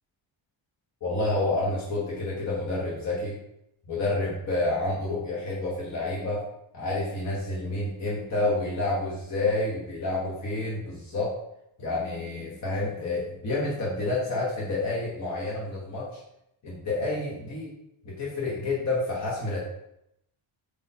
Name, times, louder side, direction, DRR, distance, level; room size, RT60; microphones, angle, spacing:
voice 1, 1.0-3.3 3.9-6.4 6.7-11.3 11.8-16.0 16.6-17.7 18.0-19.6, left 2 dB, 35° left, -6 dB, 1.0 m, -29 dB
4.8 x 2.2 x 4.0 m, 0.81 s
wide cardioid pair, 145°, 50 cm